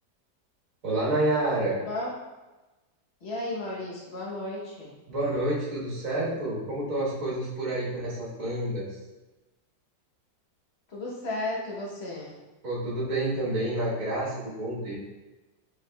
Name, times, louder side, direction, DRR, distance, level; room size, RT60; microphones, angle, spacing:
voice 1, 0.8-1.8 5.1-9.0 12.6-14.9, right 1 dB, 50° right, -6 dB, 1.7 m, -29 dB
voice 2, 1.7-2.1 3.2-4.9 10.9-12.4, left 2 dB, 45° left, -4 dB, 1.0 m, -34 dB
4.8 x 4.6 x 2.3 m, 1.1 s
omnidirectional pair, 2.0 m